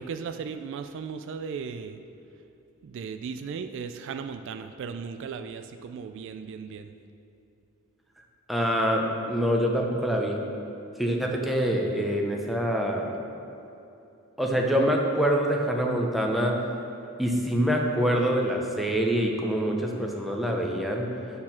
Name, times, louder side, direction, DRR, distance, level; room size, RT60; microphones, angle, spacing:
voice 1, 0.0-2.0 2.8-6.9, right 6 dB, 60° right, 8 dB, 0.3 m, -36 dB
voice 2, 8.5-10.4 11.0-13.1 14.4-16.6 17.2-21.1, equal, ahead, 0 dB, 0.7 m, -25 dB
8.6 x 4.3 x 5.7 m, 2.8 s
head